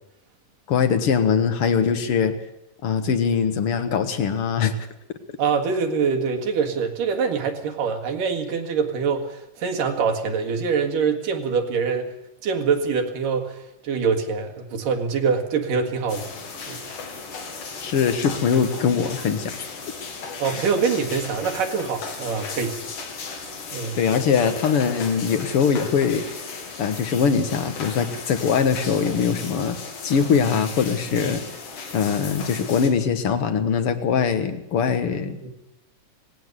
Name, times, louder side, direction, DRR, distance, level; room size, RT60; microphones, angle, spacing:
voice 1, 0.7-2.4 2.8-4.7 17.8-19.7 24.0-26.2 26.8-29.8 30.0-31.4 31.9-35.5, left 6 dB, 55° left, 10 dB, 1.8 m, -22 dB
voice 2, 5.4-12.1 12.4-13.5 13.8-16.3 16.7-16.8 20.4-22.8 23.7-24.0 31.1-31.2 35.4-35.5, right 5 dB, 75° right, 3 dB, 3.4 m, -24 dB
sound 1, 16.1-32.9, left 4 dB, 70° left, 4.2 m, -36 dB
19.5 x 16.5 x 8.1 m, 0.83 s
omnidirectional pair, 3.9 m